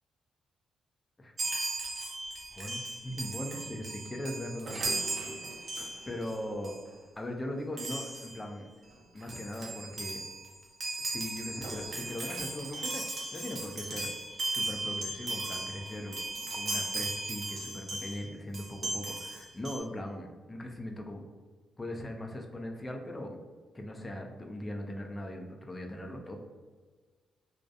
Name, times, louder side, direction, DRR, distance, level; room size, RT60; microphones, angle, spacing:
Chime, 1.4-6.3 6.6-6.9 7.8-8.4 8.9-9.0 9.2-18.2 18.5-19.8, right 2 dB, 40° right, 0.5 m, -37 dB
voice 1, 2.6-4.9 5.3-5.7 6.1-6.8 7.2-8.7 9.1-10.2 11.0-14.1 14.5-16.2 16.5-21.2 21.8-23.4 23.7-26.4, left 1 dB, 20° left, 2 dB, 0.3 m, -39 dB
2.5 x 2.4 x 2.3 m, 1.5 s
cardioid pair, 95°, 0 cm